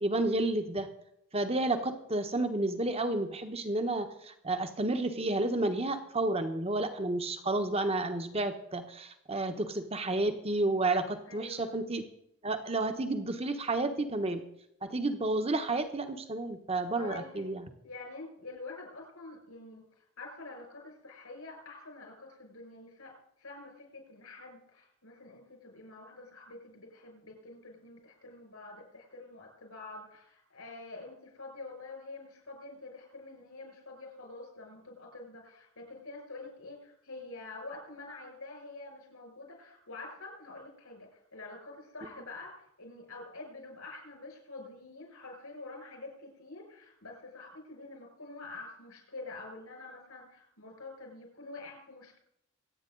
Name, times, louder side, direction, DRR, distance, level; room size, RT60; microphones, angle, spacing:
voice 1, 0.0-0.9 1.3-12.0 12.4-14.4 14.8-17.7, right 2 dB, 30° right, 8 dB, 1.1 m, -31 dB
voice 2, 11.2-11.7 16.9-17.5 17.8-23.1 23.4-52.2, left 2 dB, 85° left, 1 dB, 6.1 m, -47 dB
25.0 x 9.0 x 3.9 m, 0.76 s
head